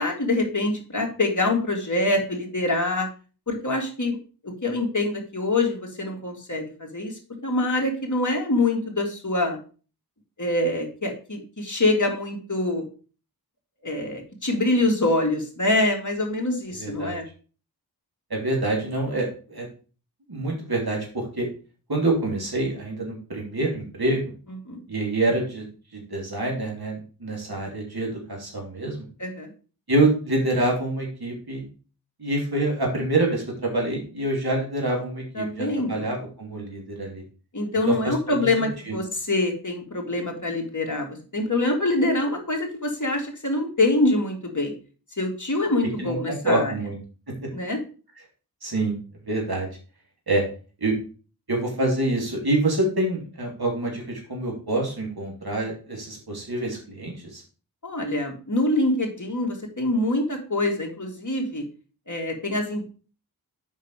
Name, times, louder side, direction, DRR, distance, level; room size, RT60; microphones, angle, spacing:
voice 1, 0.0-3.1 3.5-4.2 4.4-7.1 7.4-9.6 10.4-12.8 13.8-17.2 24.7-24.8 29.2-29.5 35.3-36.1 37.5-41.1 41.3-44.7 45.2-46.7 47.5-47.8 57.8-61.6 62.1-62.9, left 2 dB, 50° left, 1 dB, 2.4 m, -25 dB
voice 2, 16.8-17.2 18.3-19.7 20.3-21.5 21.9-24.2 24.9-25.6 25.9-29.1 29.9-31.6 32.2-37.2 37.9-38.1 38.6-39.0 46.0-47.0 48.6-49.0 49.3-49.7 50.3-50.4 50.8-50.9 51.5-57.4, right 2 dB, 70° right, -1 dB, 3.1 m, -26 dB
7.1 x 5.6 x 4.8 m, 0.37 s
wide cardioid pair, 55°, 39 cm